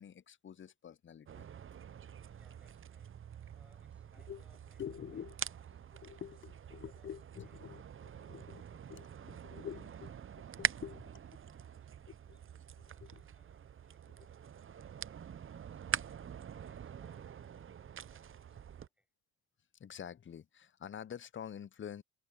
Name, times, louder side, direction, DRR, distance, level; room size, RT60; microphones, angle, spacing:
voice 1, 0.0-1.5 4.3-4.4 4.8-5.4 5.9-8.6 8.9-10.1 10.6-11.0 12.3-12.4 12.8-13.2 19.8-22.0, left 8 dB, 30° left, 0.7 m, -47 dB
sound 1, 1.3-18.9, right 8 dB, 30° right, 0.7 m, -44 dB
voice 2, 2.3-5.6 6.1-7.2 7.4-8.5 12.9-16.0 16.3-19.1, equal, 5° right, 7.8 m, -72 dB
hypercardioid pair, 60°, 41 cm